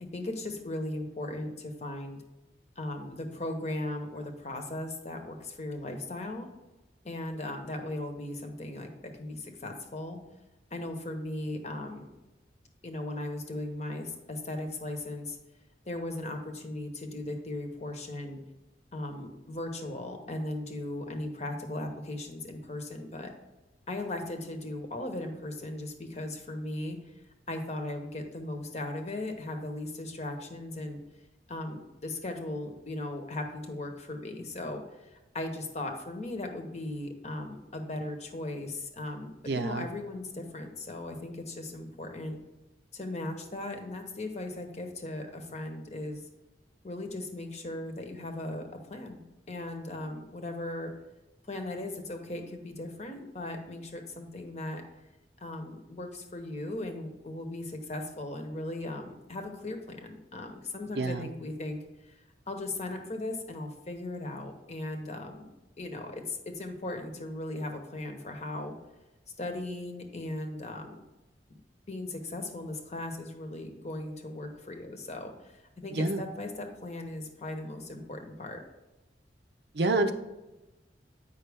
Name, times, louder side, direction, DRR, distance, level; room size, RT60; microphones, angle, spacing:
voice 1, 0.1-2.2 2.8-6.5 7.0-10.2 10.7-12.1 12.8-15.4 15.9-18.4 18.9-23.3 23.9-27.0 27.5-31.0 31.5-42.4 42.9-46.2 46.8-49.2 49.5-50.9 51.5-54.8 55.4-62.2 62.5-65.4 65.8-68.8 69.4-71.0 71.9-78.6, left 1 dB, 40° left, 4 dB, 0.9 m, -37 dB
voice 2, 39.5-39.9 60.9-61.3 75.9-76.2 79.7-80.1, right 2 dB, 65° right, 7 dB, 0.6 m, -28 dB
8.2 x 5.5 x 3.5 m, 1.0 s
head